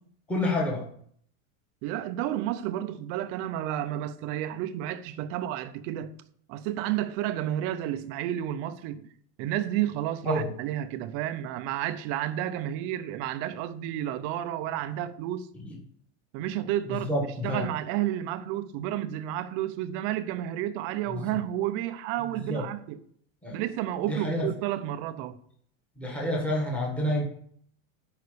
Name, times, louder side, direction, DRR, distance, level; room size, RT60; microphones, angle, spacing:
voice 1, 0.3-0.8 10.2-10.5 16.9-17.7 21.1-21.4 22.3-22.7 23.4-23.6 24.1-24.5 26.0-27.3, left 1 dB, 5° left, 1.6 m, -28 dB
voice 2, 1.8-6.1 6.5-9.1 9.4-15.5 16.3-17.1 17.4-23.0 23.5-25.4, right 12 dB, 35° right, 0.6 m, -31 dB
9.3 x 5.9 x 6.7 m
supercardioid pair, 170°, 40 cm